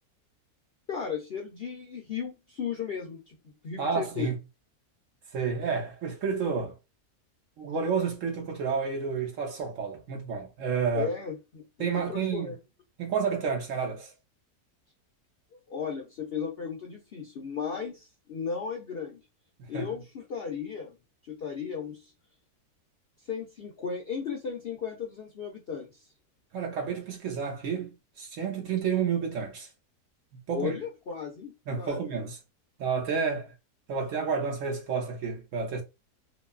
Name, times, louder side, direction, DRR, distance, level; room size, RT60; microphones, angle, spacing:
voice 1, 0.9-4.3 10.9-12.6 15.5-19.2 19.7-20.9 21.3-22.1 23.3-26.0 30.5-32.0, left 6 dB, 60° left, 0.6 m, -35 dB
voice 2, 3.8-4.4 5.3-6.8 7.6-11.1 11.8-12.5 13.0-14.1 19.7-19.9 26.5-27.9 28.2-29.7 30.3-30.7 31.7-32.4 32.8-33.5 33.9-35.8, right 6 dB, 65° right, 0.9 m, -30 dB
3.0 x 2.2 x 2.3 m
omnidirectional pair, 1.7 m